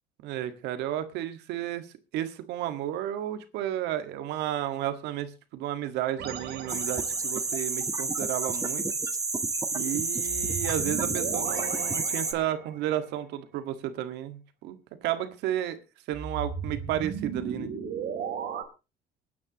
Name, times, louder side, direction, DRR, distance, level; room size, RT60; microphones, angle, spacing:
voice 1, 0.2-1.9 2.1-8.8 9.7-15.8 16.1-17.7, right 12 dB, 90° right, 10 dB, 1.8 m, -32 dB
sound 1, 6.2-7.5 10.2-12.9 16.1-18.6, right 6 dB, 70° right, 3.4 m, -36 dB
sound 2, 6.7-12.3, right 3 dB, 20° right, 1.3 m, -30 dB
24.5 x 9.6 x 3.0 m, 0.30 s
cardioid pair, 110°, 17 cm